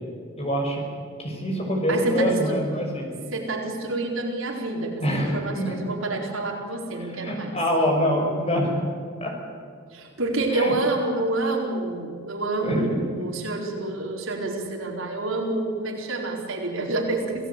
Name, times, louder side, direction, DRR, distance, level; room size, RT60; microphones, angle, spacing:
voice 1, 0.4-0.8 1.2-3.1 5.0-5.8 7.0-8.8 9.2-9.3 10.5-10.8 12.6-13.0, equal, 30° left, 1 dB, 5.9 m, -25 dB
voice 2, 1.9-2.5 3.3-7.6 9.9-17.5, right 2 dB, 70° right, 0 dB, 4.5 m, -28 dB
27.0 x 17.5 x 8.4 m, 2.2 s
head